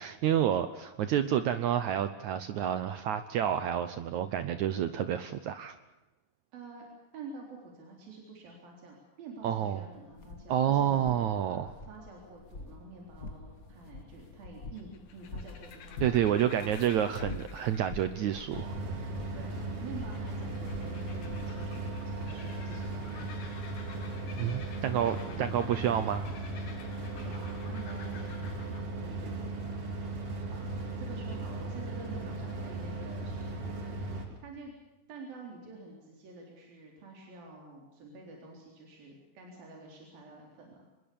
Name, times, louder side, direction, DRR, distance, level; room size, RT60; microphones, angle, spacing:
voice 1, 0.0-5.8 9.4-9.8 10.5-11.7 16.0-18.8 24.4-26.3, right 10 dB, 70° right, 11 dB, 2.0 m, -29 dB
voice 2, 6.5-6.9 7.1-17.2 19.1-23.5 24.9-25.5 27.1-29.5 30.5-34.7 35.1-40.8, right 3 dB, 85° right, 0 dB, 5.8 m, -48 dB
sound 1, 9.9-23.5, left 3 dB, 35° left, 1.6 m, -47 dB
sound 2, 14.7-28.8, left 6 dB, 60° left, 3.1 m, -51 dB
sound 3, 18.5-34.3, right 2 dB, 40° right, 4.0 m, -37 dB
26.0 x 21.0 x 7.1 m, 1.0 s
omnidirectional pair, 4.0 m